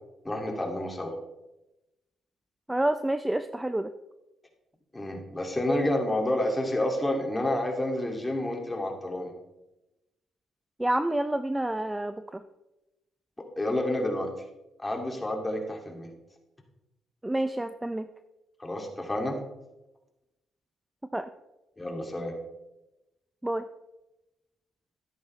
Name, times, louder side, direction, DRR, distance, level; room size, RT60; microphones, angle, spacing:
voice 1, 0.2-1.2 4.9-9.3 13.6-14.3 14.8-16.1 18.6-19.4 21.8-22.3, left 1 dB, 15° left, 2 dB, 2.3 m, -29 dB
voice 2, 2.7-3.9 10.8-12.4 17.2-18.1 21.1-21.3 23.4-23.6, right 1 dB, 10° right, 10 dB, 0.5 m, -28 dB
13.0 x 10.5 x 3.2 m, 0.98 s
cardioid pair, 90°, 0 cm